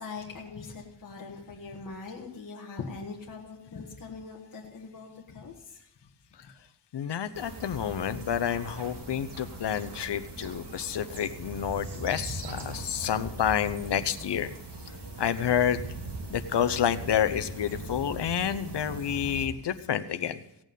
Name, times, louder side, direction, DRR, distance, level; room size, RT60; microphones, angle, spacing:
voice 1, 0.0-5.8 6.4-6.5, left 4 dB, 45° left, -1 dB, 1.7 m, -41 dB
voice 2, 6.9-14.5 15.2-15.8 16.3-20.4, left 9 dB, 65° left, 11 dB, 0.9 m, -29 dB
sound 1, 7.3-19.5, right 2 dB, 60° right, 2.8 m, -40 dB
16.5 x 8.9 x 5.3 m, 0.85 s
wide cardioid pair, 120°, 45 cm